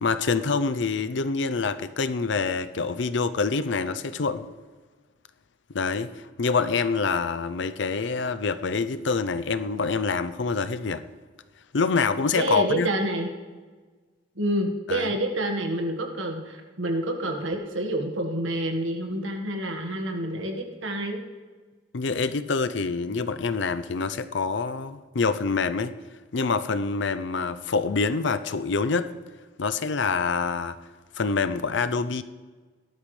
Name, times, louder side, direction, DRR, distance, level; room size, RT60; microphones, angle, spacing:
voice 1, 0.0-4.5 5.7-11.0 11.7-12.9 14.9-15.1 21.9-25.9 26.3-29.1 29.6-30.8 31.1-32.2, left 4 dB, 65° left, 12 dB, 0.6 m, -26 dB
voice 2, 12.3-13.3 14.3-21.2, right 1 dB, 85° right, 3 dB, 1.6 m, -28 dB
18.5 x 12.0 x 3.3 m, 1.4 s
head